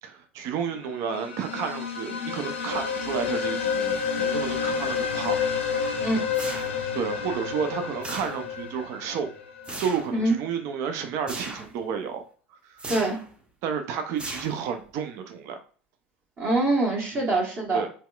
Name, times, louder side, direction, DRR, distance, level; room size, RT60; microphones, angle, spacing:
voice 1, 0.0-5.4 6.9-9.3 9.8-12.2 12.7-12.9 13.6-15.6 17.1-17.3 17.7-17.9, right 7 dB, 50° right, 6 dB, 0.5 m, -31 dB
sound 1, 1.0-9.8, left 6 dB, 80° left, 0.6 m, -29 dB
sound 2, 6.3-7.0 8.0-8.7 9.6-10.2 11.3-11.8 12.8-13.3 14.2-14.9, right 2 dB, 15° right, 0.7 m, -37 dB
voice 2, 12.9-13.2 16.4-17.8, right 2 dB, 35° right, -3 dB, 1.0 m, -24 dB
4.1 x 2.2 x 2.3 m, 0.41 s
figure-of-eight pair, 75°, 6 cm